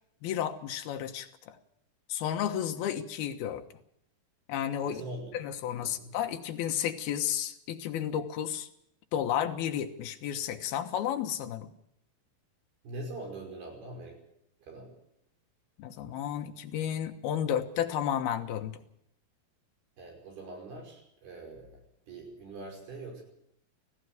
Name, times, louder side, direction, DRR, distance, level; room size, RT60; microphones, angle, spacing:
voice 1, 0.2-1.6 2.1-3.6 4.5-5.0 5.3-8.7 9.1-11.7 15.8-18.8, left 10 dB, 70° left, 6 dB, 2.9 m, -32 dB
voice 2, 4.8-5.4 5.8-6.1 12.8-14.2 14.6-14.9 20.0-21.8 22.1-23.2, right 2 dB, 60° right, 1 dB, 7.3 m, -43 dB
18.0 x 15.5 x 9.4 m, 0.76 s
omnidirectional pair, 5.0 m